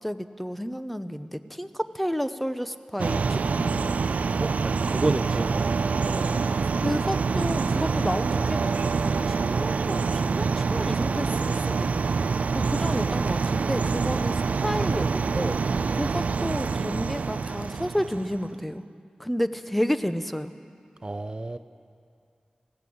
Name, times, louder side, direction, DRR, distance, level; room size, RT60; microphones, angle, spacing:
voice 1, 0.0-3.9 6.8-15.6 15.9-18.8 19.2-20.5, equal, 5° left, 10 dB, 1.0 m, -31 dB
sound 1, 3.0-18.5, right 5 dB, 80° right, 0.4 m, -26 dB
voice 2, 4.4-5.7 6.0-6.5 21.0-21.6, right 2 dB, 40° right, 11 dB, 0.7 m, -30 dB
19.5 x 16.0 x 8.7 m, 2.4 s
cardioid pair, 45°, 2 cm